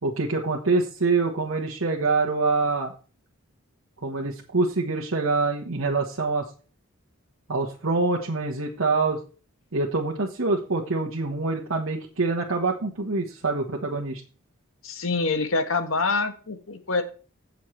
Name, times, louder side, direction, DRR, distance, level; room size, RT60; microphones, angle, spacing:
voice 1, 0.0-2.9 4.0-6.4 7.5-9.2 9.7-14.2, right 3 dB, 85° right, -2 dB, 1.4 m, -25 dB
voice 2, 14.8-17.0, left 3 dB, 85° left, 7 dB, 1.5 m, -25 dB
16.5 x 6.7 x 3.3 m, 0.37 s
head